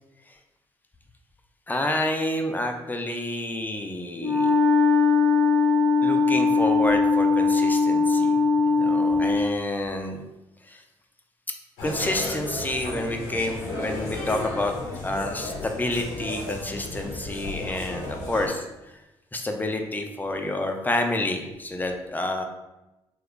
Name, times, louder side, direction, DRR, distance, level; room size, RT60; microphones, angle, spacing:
voice 1, 1.7-4.5 6.0-10.2 10.7-10.8 11.8-14.7 15.0-18.7 19.3-22.4, left 1 dB, 15° left, 4 dB, 0.6 m, -29 dB
Wind instrument woodwind instrument, 4.2-9.6, left 4 dB, 75° right, 0.7 m, -20 dB
sound 1, 11.8-18.5, left 1 dB, 80° left, 0.8 m, -34 dB
3.1 x 2.3 x 3.6 m, 0.98 s
hypercardioid pair, 45°, 13 cm